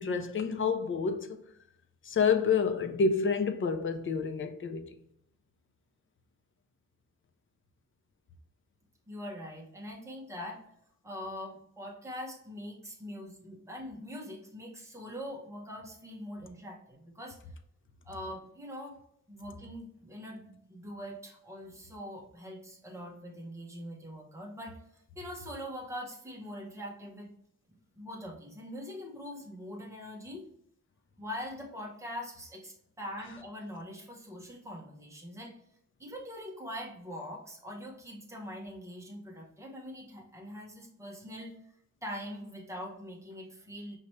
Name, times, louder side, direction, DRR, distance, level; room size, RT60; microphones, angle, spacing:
voice 1, 0.0-1.4 2.0-4.9, left 5 dB, 40° left, 0.5 m, -28 dB
voice 2, 9.1-10.6 11.0-17.4 18.0-19.0 19.3-27.3 27.7-30.5 31.2-35.5 36.0-41.6 42.0-44.0, equal, 10° right, 1.0 m, -43 dB
5.6 x 2.9 x 3.1 m
wide cardioid pair, 180°, 32 cm